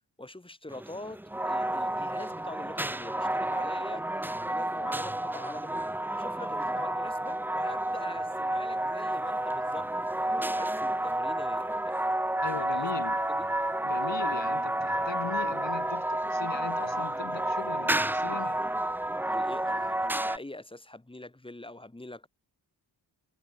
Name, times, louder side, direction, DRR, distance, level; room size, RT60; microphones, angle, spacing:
voice 1, 0.2-4.1 4.4-9.9 10.5-12.0 12.5-13.0 13.4-13.5 19.2-22.3, left 2 dB, 10° left, 3.7 m, -44 dB
sound 1, 0.7-20.4, right 1 dB, 5° right, 0.5 m, -30 dB
voice 2, 12.4-13.2 13.8-18.6, left 8 dB, 90° left, 3.8 m, -39 dB
wide cardioid pair, 170°, 43 cm